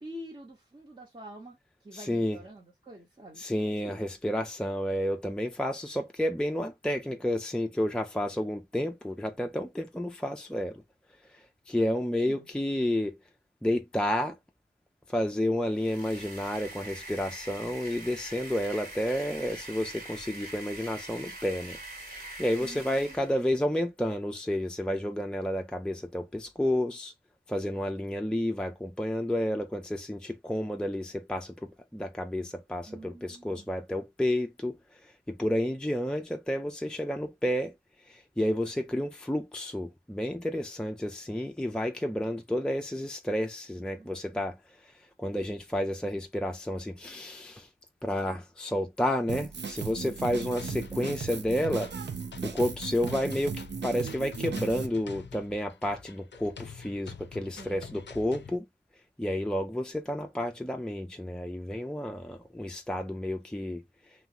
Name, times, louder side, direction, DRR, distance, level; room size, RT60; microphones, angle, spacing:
voice 1, 0.0-3.4 3.8-4.0 12.2-12.5 22.6-23.4 32.9-33.8 43.7-44.4 50.0-50.5 57.6-58.0, right 1 dB, 30° right, 1.0 m, -47 dB
voice 2, 1.9-2.4 3.4-10.8 11.3-13.1 13.6-14.4 15.1-21.8 22.1-27.1 27.5-34.8 35.0-37.7 38.1-44.6 44.8-44.9 45.2-47.7 48.0-51.9 52.4-58.7 59.2-63.8, left 1 dB, 5° left, 0.4 m, -31 dB
sound 1, 15.6-23.4, right 2 dB, 55° right, 1.4 m, -43 dB
Drum kit, 49.3-54.9, right 5 dB, 80° right, 0.5 m, -37 dB
sound 2, 50.6-58.6, left 6 dB, 85° left, 0.4 m, -46 dB
3.1 x 2.2 x 2.7 m
wide cardioid pair, 40°, 18 cm